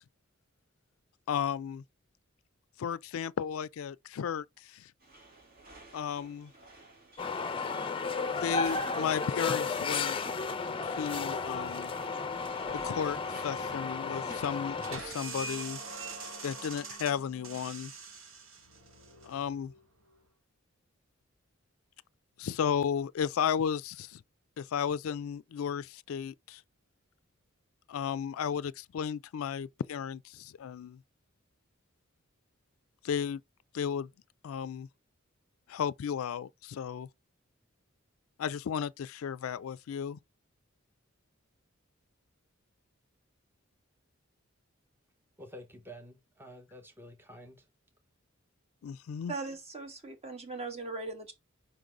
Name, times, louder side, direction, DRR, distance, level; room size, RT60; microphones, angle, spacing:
voice 1, 1.3-1.8 2.8-4.5 4.7-4.8 5.9-6.5 8.4-10.2 10.8-11.9 12.8-15.8 16.4-17.9 19.3-19.7 22.4-24.2 24.6-26.6 27.9-31.0 33.0-33.4 33.7-34.1 34.4-34.9 35.7-37.1 38.4-40.2 48.8-49.3, left 8 dB, 90° left, 0.4 m, -34 dB
sound 1, 5.0-16.9, right 2 dB, 45° right, 2.2 m, -55 dB
sound 2, 7.2-15.0, left 4 dB, 25° left, 0.5 m, -33 dB
sound 3, 14.8-20.2, right 3 dB, 75° right, 1.4 m, -44 dB
voice 2, 45.4-47.6, equal, 10° right, 0.8 m, -49 dB
voice 3, 49.3-51.3, right 3 dB, 30° right, 1.5 m, -39 dB
5.2 x 3.9 x 4.8 m
head